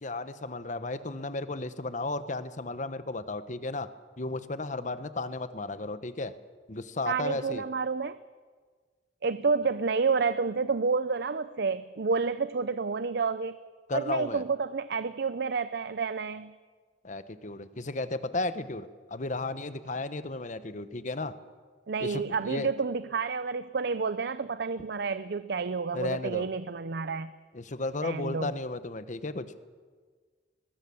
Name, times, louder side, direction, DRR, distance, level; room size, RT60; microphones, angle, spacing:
voice 1, 0.0-3.9 4.2-6.3 6.7-7.6 13.9-14.4 17.0-21.3 22.0-22.7 25.9-26.5 27.5-29.5, left 2 dB, 45° left, 12 dB, 1.1 m, -34 dB
voice 2, 7.1-8.2 9.2-13.6 13.9-16.5 21.9-27.3 28.0-28.5, right 4 dB, 65° right, 14 dB, 0.6 m, -29 dB
22.0 x 20.5 x 7.1 m, 1.5 s
head